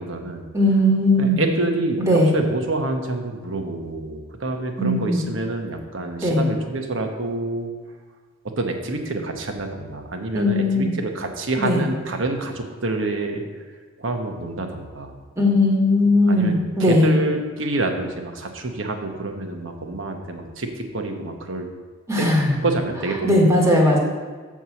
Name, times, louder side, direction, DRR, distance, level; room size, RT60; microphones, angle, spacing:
voice 1, 0.0-0.5 1.2-7.7 8.6-13.4 14.0-15.1 16.3-16.5 16.8-21.7 22.2-22.3 22.6-23.5, right 2 dB, 70° right, 4 dB, 1.1 m, -27 dB
voice 2, 0.5-1.4 2.0-2.3 4.8-5.2 6.2-6.5 10.3-10.9 11.6-11.8 15.4-17.1 22.1-22.5 23.2-24.0, left 1 dB, 15° right, -2 dB, 1.6 m, -18 dB
7.3 x 4.7 x 7.0 m, 1.4 s
head